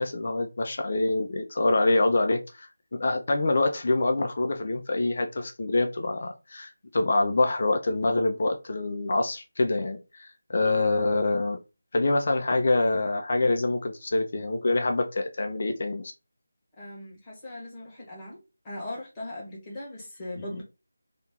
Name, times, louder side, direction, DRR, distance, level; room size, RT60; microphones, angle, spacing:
voice 1, 0.0-11.6 11.9-16.1, left 2 dB, 45° left, 0.6 m, -26 dB
voice 2, 16.8-18.4 18.6-20.6, left 1 dB, 15° left, 1.3 m, -39 dB
2.9 x 2.7 x 3.6 m
figure-of-eight pair, 165°, 0 cm